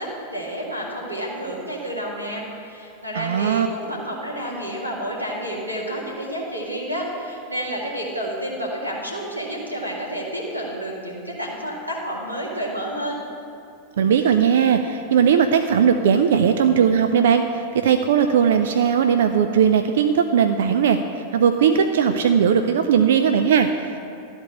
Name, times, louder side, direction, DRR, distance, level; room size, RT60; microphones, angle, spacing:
voice 1, 0.0-13.2, right 1 dB, 90° right, -4 dB, 2.0 m, -30 dB
voice 2, 3.1-3.7 14.0-24.0, right 7 dB, 60° right, 7 dB, 0.4 m, -18 dB
13.0 x 4.4 x 8.3 m, 2.6 s
figure-of-eight pair, 90°, 0 cm